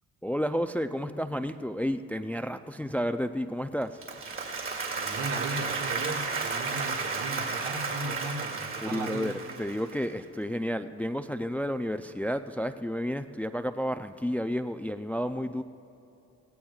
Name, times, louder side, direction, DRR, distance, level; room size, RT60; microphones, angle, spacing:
voice 1, 0.2-4.0 8.8-15.6, equal, 5° left, 9 dB, 0.3 m, -31 dB
Applause, 3.8-10.1, right 4 dB, 45° right, 2.3 m, -33 dB
voice 2, 4.9-9.3, right 3 dB, 80° right, 0 dB, 1.8 m, -37 dB
17.5 x 16.5 x 2.4 m, 2.7 s
cardioid pair, 90°, 30 cm